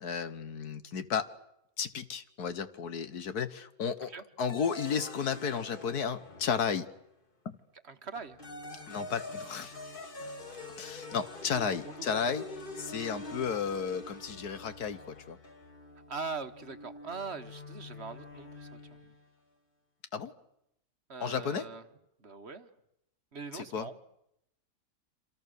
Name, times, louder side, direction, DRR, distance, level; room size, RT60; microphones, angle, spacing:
voice 1, 0.0-1.3 1.8-4.1 4.4-6.9 7.5-7.6 8.9-9.7 10.8-12.4 12.8-15.4 20.1-20.3 21.2-21.6 23.5-23.9, left 6 dB, 80° left, 11 dB, 1.8 m, -33 dB
sound 1, 4.5-7.1 8.1-19.3, left 2 dB, 35° left, 2.3 m, -46 dB
voice 2, 7.8-8.4 11.8-12.3 16.1-18.8 21.1-21.8 22.2-22.7 23.3-24.0, right 4 dB, 45° right, 9 dB, 1.4 m, -41 dB
28.0 x 26.5 x 6.7 m, 0.79 s
omnidirectional pair, 1.6 m